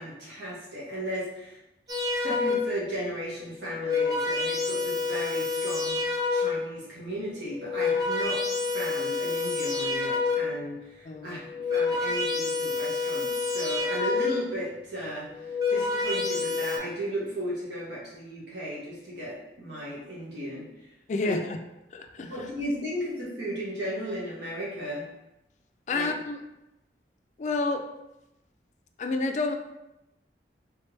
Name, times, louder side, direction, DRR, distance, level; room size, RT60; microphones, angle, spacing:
voice 1, 0.0-1.6 2.2-6.0 6.3-15.3 15.7-20.6 21.2-21.4 22.3-25.0 25.9-26.1, equal, 85° right, -6 dB, 1.5 m, -35 dB
sound 1, 1.9-2.9 3.6-6.8 7.5-10.7 11.4-14.6 15.3-16.8, left 4 dB, 20° right, 0.8 m, -28 dB
voice 2, 11.1-11.4 21.1-21.6 21.9-22.3 25.9-26.4 27.4-27.9 29.0-29.6, left 3 dB, 40° left, 5 dB, 0.3 m, -29 dB
3.4 x 3.3 x 3.2 m, 0.92 s
head